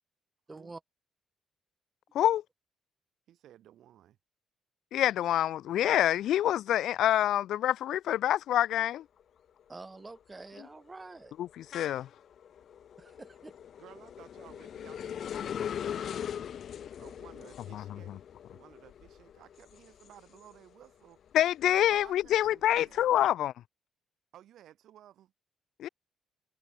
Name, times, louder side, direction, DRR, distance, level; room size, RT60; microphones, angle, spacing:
voice 1, 0.5-0.8 9.7-11.3 13.0-13.5, right 3 dB, 20° right, 6.3 m, -47 dB
voice 2, 3.3-4.2 13.8-16.7 17.0-18.2 18.5-21.3 21.9-23.2 24.3-25.3, right 12 dB, 75° right, 5.5 m, -56 dB
voice 3, 4.9-9.0 11.4-12.1 17.7-17.8 21.3-23.5 25.8-25.9, left 12 dB, 75° left, 0.5 m, -26 dB
sound 1, 9.0-9.2 9.6-20.9 21.3-23.0, left 9 dB, 60° left, 1.4 m, -41 dB
cardioid pair, 90°, 0 cm